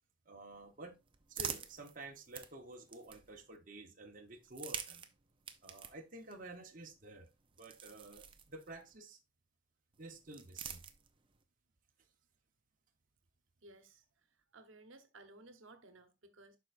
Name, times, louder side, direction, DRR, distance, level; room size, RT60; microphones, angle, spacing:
voice 1, 0.3-1.0 1.3-5.1 5.6-7.3 7.6-9.2 10.0-10.8, right 2 dB, 45° right, 1.1 m, -51 dB
sound 1, 0.5-3.6 4.4-9.0 9.9-11.4, right 7 dB, 25° right, 0.6 m, -48 dB
voice 2, 13.6-14.0 14.5-16.6, right 2 dB, 80° right, 1.1 m, -58 dB
11.5 x 4.5 x 2.5 m
head